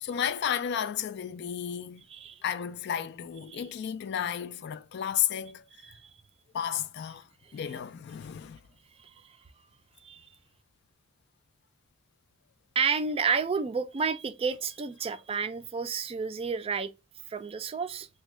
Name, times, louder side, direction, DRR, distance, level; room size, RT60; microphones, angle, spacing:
voice 1, 0.0-2.0 2.4-5.6 6.5-7.2 7.5-8.6, left 9 dB, 55° left, 0.3 m, -32 dB
voice 2, 2.1-2.4 3.5-3.7 5.8-6.0 7.7-7.8 9.0-9.1 10.0-10.3 12.8-16.9 17.3-18.1, right 5 dB, 30° right, 0.3 m, -30 dB
3.5 x 2.2 x 3.1 m
head